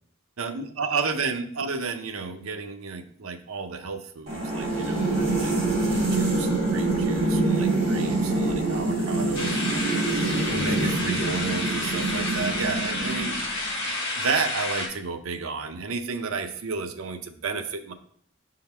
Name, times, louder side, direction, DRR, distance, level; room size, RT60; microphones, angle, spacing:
voice 1, 0.4-9.9 10.5-13.4 13.8-17.9, right 4 dB, 75° right, 8 dB, 0.6 m, -32 dB
sound 1, 4.3-13.6, right 2 dB, 30° right, 2.0 m, -25 dB
sound 2, 9.3-14.9, left 2 dB, 50° left, 1.8 m, -30 dB
5.8 x 3.8 x 4.3 m, 0.63 s
head